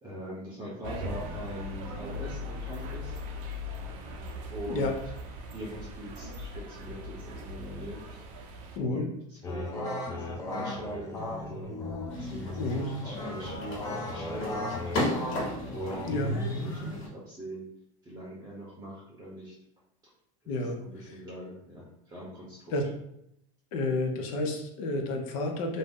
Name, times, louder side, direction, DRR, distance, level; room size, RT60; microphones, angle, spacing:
voice 1, 0.0-3.1 4.5-5.0 5.5-8.2 8.8-11.8 12.2-15.3 15.7-16.1 16.5-17.7 18.0-19.5 20.4-22.7, right 1 dB, 20° right, -5 dB, 0.7 m, -42 dB
sound 1, 0.8-8.8, left 2 dB, 65° right, 0.5 m, -39 dB
voice 2, 8.8-9.1 12.6-12.9 16.1-16.3 20.5-20.8 22.7-22.8 23.7-25.8, left 2 dB, 70° left, 3 dB, 0.7 m, -30 dB
sound 2, 9.4-17.0, left 1 dB, 20° left, 0.5 m, -35 dB
sound 3, 12.1-17.1, left 2 dB, 55° left, 1.3 m, -36 dB
2.6 x 2.0 x 3.5 m, 0.78 s
supercardioid pair, 140°, 17 cm